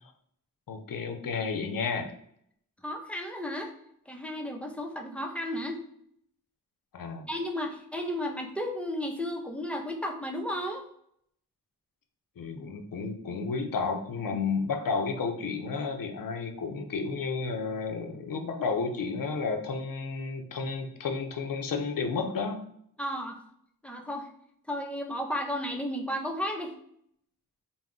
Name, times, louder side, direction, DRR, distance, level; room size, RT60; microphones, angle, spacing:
voice 1, 0.7-2.1 6.9-7.3 12.4-22.6, left 4 dB, 65° left, 5 dB, 0.5 m, -32 dB
voice 2, 2.8-3.7 4.1-5.8 7.3-10.9 23.0-23.4 23.8-24.3 24.7-26.7, equal, 5° left, 2 dB, 0.4 m, -33 dB
2.3 x 2.1 x 3.6 m, 0.68 s
cardioid pair, 45°, 36 cm